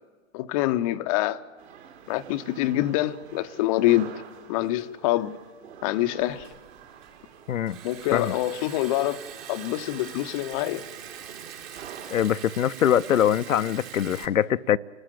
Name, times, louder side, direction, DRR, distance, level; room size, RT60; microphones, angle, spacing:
voice 1, 0.3-1.4 2.1-4.2 4.5-5.4 5.8-6.5 7.8-9.2 9.5-10.8, left 15 dB, 25° left, 0.7 m, -25 dB
sound 1, 1.6-12.5, right 8 dB, 50° right, 3.5 m, -47 dB
Liquid, 6.2-14.3, right 9 dB, 30° right, 1.6 m, -43 dB
voice 2, 12.1-14.8, left 10 dB, 75° left, 0.6 m, -23 dB
28.5 x 13.0 x 8.9 m
figure-of-eight pair, 125°, 40 cm